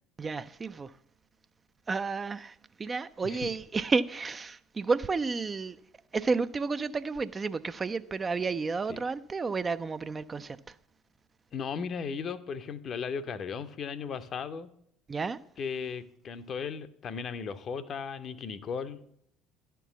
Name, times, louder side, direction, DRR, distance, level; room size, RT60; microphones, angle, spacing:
voice 1, 0.2-0.9 1.9-5.8 6.1-10.8 15.1-15.4, right 4 dB, 30° right, 0.4 m, -31 dB
voice 2, 11.5-14.7 15.6-19.1, left 6 dB, 45° left, 0.6 m, -36 dB
10.5 x 4.6 x 7.0 m
hypercardioid pair, 60°, 0 cm